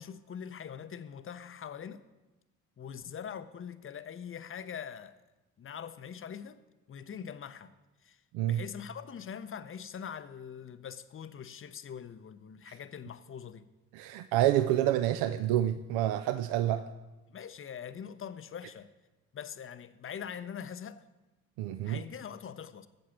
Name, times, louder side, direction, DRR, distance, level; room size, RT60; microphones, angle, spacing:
voice 1, 0.0-2.1 2.8-5.2 5.6-6.6 6.9-7.7 8.0-8.2 8.5-13.7 17.3-18.9 19.3-21.0 21.8-22.9, left 8 dB, 30° left, 0.6 m, -43 dB
voice 2, 13.9-16.8 21.6-22.0, right 12 dB, 70° right, 0.5 m, -28 dB
7.8 x 7.6 x 7.0 m
hypercardioid pair, 50°, 41 cm